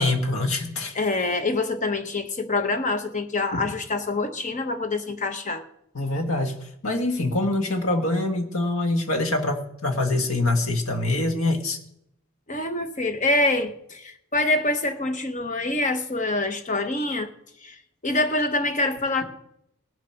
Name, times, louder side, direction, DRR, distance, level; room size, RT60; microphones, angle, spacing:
voice 1, 0.0-0.9 3.5-3.6 5.9-11.8, left 2 dB, 80° left, 5 dB, 1.5 m, -25 dB
voice 2, 0.9-5.6 12.5-17.3 17.6-17.8 18.0-19.2, left 2 dB, 35° left, 9 dB, 0.9 m, -25 dB
18.5 x 7.5 x 5.8 m, 0.77 s
head